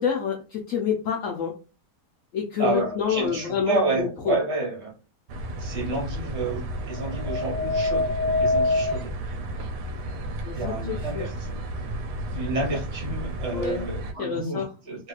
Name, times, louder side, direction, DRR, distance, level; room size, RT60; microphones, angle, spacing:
voice 1, 0.0-1.5 2.3-4.4 10.4-11.3 13.5-13.9 14.2-14.7, left 7 dB, 65° left, 1 dB, 0.9 m, -28 dB
voice 2, 2.6-4.9 5.6-8.1 8.4-9.1 10.5-11.6 12.3-15.1, right 2 dB, 45° right, -1 dB, 1.3 m, -30 dB
sound 1, 2.8-3.5 6.8-9.0, left 2 dB, 90° left, 1.2 m, -26 dB
sound 2, 5.3-14.1, right 1 dB, 85° right, 1.2 m, -33 dB
3.1 x 3.0 x 2.4 m, 0.32 s
omnidirectional pair, 1.7 m